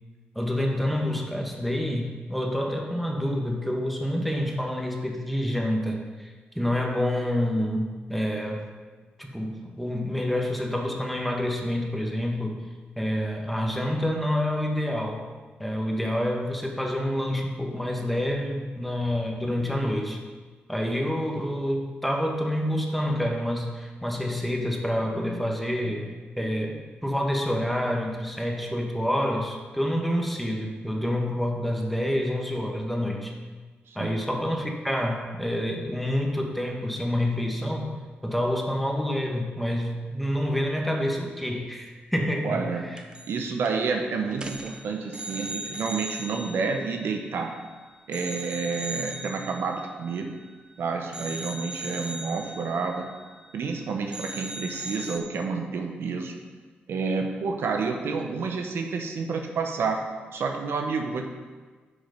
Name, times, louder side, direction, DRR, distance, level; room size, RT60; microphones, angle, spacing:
voice 1, 0.3-8.7 9.2-12.6 13.0-15.3 15.6-20.2 20.7-33.3 33.9-42.9, left 1 dB, ahead, 1 dB, 1.4 m, -28 dB
voice 2, 42.4-42.9 43.3-47.6 48.1-50.3 50.8-53.1 53.5-56.3 56.9-60.0 60.3-61.3, right 4 dB, 80° right, 3 dB, 1.0 m, -29 dB
sound 1, 43.0-43.4 43.7-43.9 44.3-47.7 48.1-50.7 51.1-53.8 54.1-55.2, right 1 dB, 25° right, 1.0 m, -39 dB
9.7 x 6.1 x 5.3 m, 1.4 s
cardioid pair, 80°, 4 cm